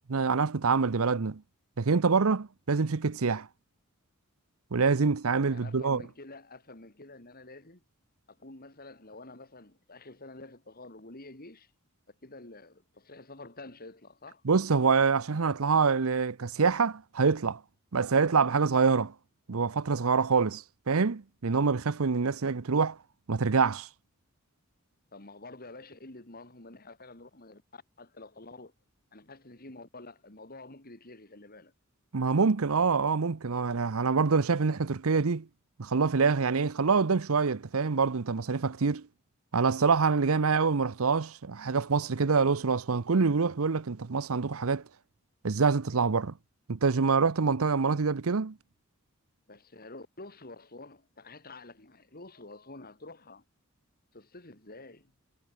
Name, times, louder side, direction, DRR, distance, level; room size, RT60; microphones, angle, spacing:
voice 1, 0.1-1.4 1.8-3.5 4.7-6.0 14.4-17.6 17.9-19.1 19.5-23.0 23.3-23.9 32.1-35.4 35.8-39.0 39.5-44.8 45.4-46.3 46.7-48.5, right 5 dB, 75° right, 0.7 m, -26 dB
voice 2, 5.5-7.8 8.3-11.7 12.2-14.4 25.1-28.7 29.1-31.7 49.5-53.4 54.1-55.1, left 2 dB, 45° left, 3.8 m, -48 dB
head